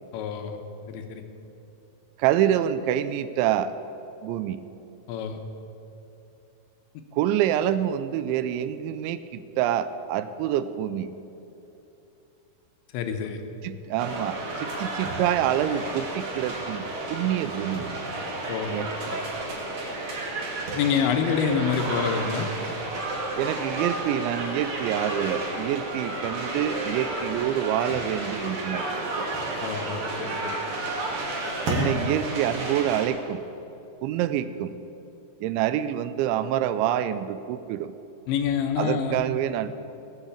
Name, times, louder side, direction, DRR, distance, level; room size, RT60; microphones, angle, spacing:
voice 1, 0.1-0.6 0.9-1.2 5.1-5.4 12.9-13.4 18.5-18.8 20.8-22.5 29.6-30.6 38.3-39.2, left 7 dB, 80° left, 5 dB, 3.3 m, -27 dB
voice 2, 2.2-3.7 4.2-4.6 7.1-11.1 13.6-18.0 18.7-19.2 23.4-29.3 31.7-33.4 34.0-34.8 35.4-38.0 38.8-39.7, right 11 dB, 85° right, 13 dB, 2.9 m, -27 dB
sound 1, 14.0-33.1, right 2 dB, 50° right, 4.0 m, -31 dB
18.0 x 8.2 x 8.6 m, 2.9 s
omnidirectional pair, 5.4 m